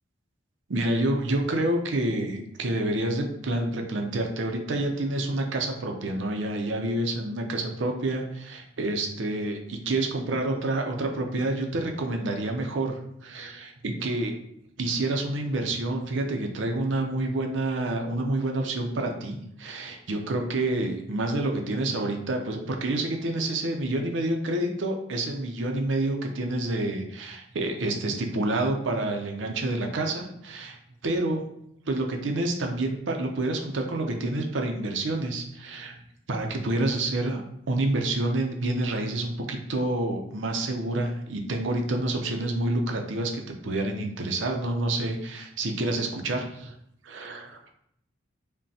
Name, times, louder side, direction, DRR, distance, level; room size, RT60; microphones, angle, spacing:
voice 1, 0.7-14.3 14.8-31.4 31.9-36.0 36.3-46.7 47.0-47.6, right 2 dB, 75° right, 3 dB, 0.6 m, -28 dB
5.3 x 2.2 x 2.7 m, 0.73 s
head